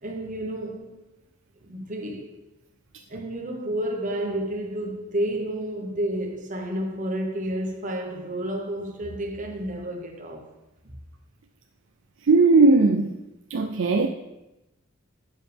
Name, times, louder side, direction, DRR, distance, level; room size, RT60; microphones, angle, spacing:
voice 1, 0.0-1.0 1.6-2.4 3.1-10.5, right 1 dB, 40° right, 1.2 m, -30 dB
voice 2, 12.3-13.1 13.5-14.1, right 3 dB, 65° right, 0.5 m, -18 dB
8.7 x 7.0 x 3.5 m
head